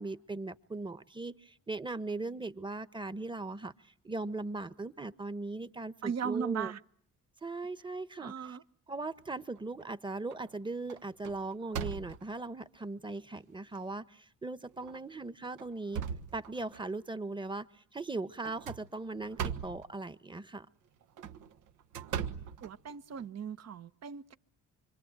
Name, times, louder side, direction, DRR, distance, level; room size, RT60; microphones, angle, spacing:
voice 1, 0.0-6.7 7.4-8.6 8.9-16.0 16.3-20.7, right 3 dB, 15° right, 1.3 m, -39 dB
voice 2, 6.0-6.8 8.2-8.6 22.6-24.3, right 7 dB, 55° right, 1.4 m, -37 dB
sound 1, 9.3-9.9 10.3-10.6 10.9-12.5 13.2-13.3 13.7-13.8 14.7-15.0 15.4-16.9 18.4-19.9 21.0-23.3, right 8 dB, 85° right, 1.4 m, -40 dB
25.5 x 25.5 x 9.0 m
cardioid pair, 90°, 30 cm